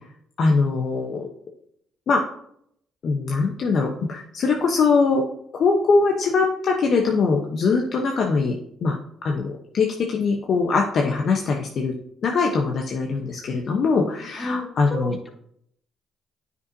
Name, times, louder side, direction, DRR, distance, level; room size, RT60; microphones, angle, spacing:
voice 1, 0.4-1.3 2.1-2.2 3.0-5.2 5.5-9.0 9.2-11.9 12.2-15.1, left 4 dB, 60° left, 1 dB, 0.9 m, -22 dB
voice 2, 14.4-15.3, left 1 dB, 20° left, 2 dB, 1.9 m, -31 dB
9.3 x 5.4 x 2.7 m, 0.70 s
supercardioid pair, 65°, 0 cm